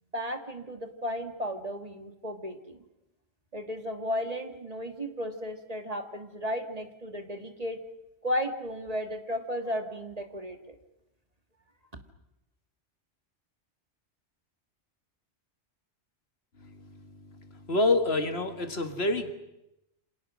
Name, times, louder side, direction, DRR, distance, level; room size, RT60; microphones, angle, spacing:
voice 1, 0.1-2.8 3.5-7.8 8.2-10.8, equal, 35° right, 6 dB, 2.0 m, -34 dB
voice 2, 17.7-19.3, left 2 dB, 60° left, 7 dB, 2.0 m, -26 dB
28.5 x 26.5 x 6.3 m, 0.88 s
omnidirectional pair, 1.2 m